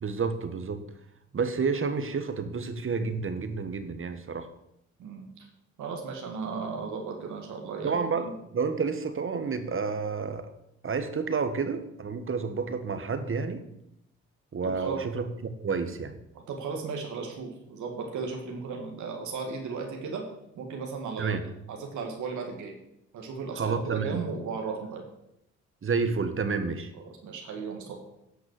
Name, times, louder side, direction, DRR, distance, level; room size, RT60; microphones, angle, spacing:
voice 1, 0.0-0.9 1.3-4.5 7.8-10.5 10.8-13.6 14.5-16.1 21.2-21.4 23.6-24.2 25.8-26.9, right 5 dB, 45° right, 9 dB, 1.4 m, -30 dB
voice 2, 5.8-8.3 14.6-15.0 16.5-20.2 20.5-22.7 23.1-23.8 24.0-25.0 27.0-28.0, right 5 dB, 80° right, 1 dB, 2.0 m, -35 dB
11.5 x 6.1 x 6.6 m, 0.80 s
supercardioid pair, 60°, 29 cm